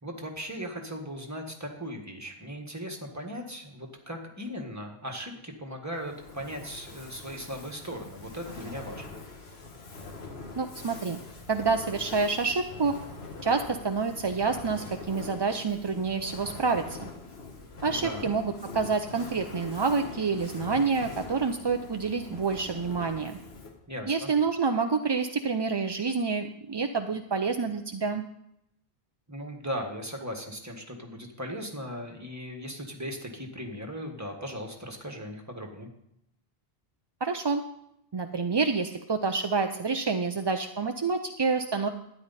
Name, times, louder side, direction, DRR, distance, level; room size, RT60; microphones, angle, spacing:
voice 1, 0.0-9.1 18.0-18.3 23.9-24.3 29.3-35.9, equal, 15° right, 2 dB, 1.6 m, -38 dB
Fire, 5.9-23.9, left 3 dB, 75° left, 1.7 m, -43 dB
voice 2, 10.6-11.2 11.5-13.0 13.4-17.1 17.8-23.4 24.1-28.2 37.2-37.6 38.1-41.9, right 4 dB, 35° right, 6 dB, 0.4 m, -28 dB
13.0 x 9.9 x 4.2 m, 0.79 s
omnidirectional pair, 1.1 m